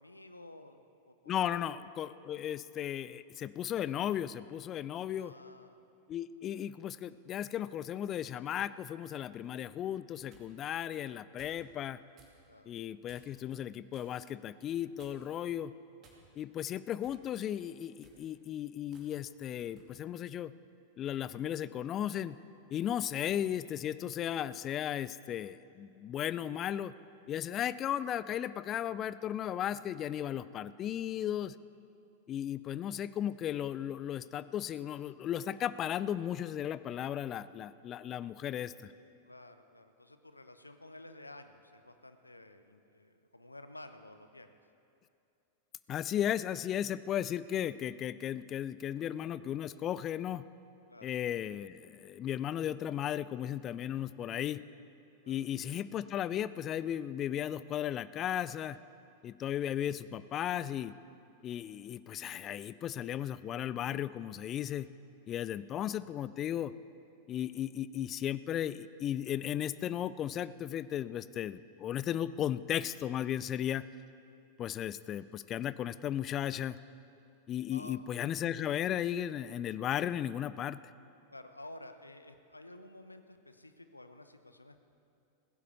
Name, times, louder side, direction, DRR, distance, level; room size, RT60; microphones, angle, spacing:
voice 1, 0.0-1.7 5.2-5.8 12.5-12.7 39.2-44.6 50.9-51.1 55.2-55.4 74.3-74.5 77.7-78.0 81.3-84.8, left 1 dB, 85° left, 9 dB, 0.7 m, -52 dB
voice 2, 1.3-5.3 6.1-12.0 12.7-15.7 16.4-20.5 21.0-22.4 22.7-26.9 27.3-31.5 32.3-38.9 45.9-50.4 51.0-54.6 55.3-58.8 59.2-60.9 61.4-64.9 65.3-66.7 67.3-73.8 74.6-76.7 77.5-80.8, left 10 dB, 30° left, 16 dB, 0.3 m, -35 dB
sound 1, 10.2-10.5 11.4-11.6 12.1-12.4 13.1-13.4 13.9-14.2 15.0-15.4 16.0-16.5 17.0-17.3 17.9-18.2 18.9-19.1 19.8-20.0, right 3 dB, 30° right, 2.5 m, -61 dB
16.0 x 9.9 x 6.7 m, 2.6 s
figure-of-eight pair, 90°, 0 cm